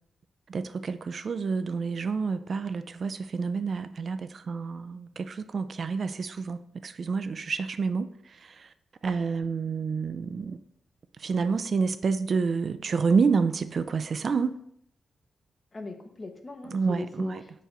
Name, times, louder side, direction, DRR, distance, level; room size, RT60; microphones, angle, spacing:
voice 1, 0.5-8.1 8.4-8.7 9.0-10.6 11.2-14.5 16.7-17.4, right 5 dB, 50° right, 0.4 m, -28 dB
voice 2, 15.7-17.6, left 3 dB, 35° left, 0.9 m, -40 dB
4.7 x 4.4 x 5.2 m
cardioid pair, 90°, 0 cm